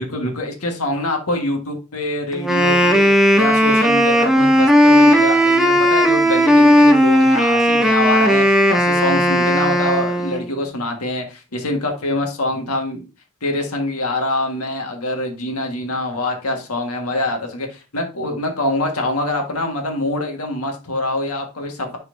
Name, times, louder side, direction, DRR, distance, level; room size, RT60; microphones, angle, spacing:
voice 1, 0.0-3.1 3.4-13.0 13.4-22.0, left 1 dB, 85° left, 1.6 m, -24 dB
Wind instrument woodwind instrument, 2.3-10.5, equal, ahead, 0.7 m, -15 dB
10.0 x 4.3 x 2.7 m
head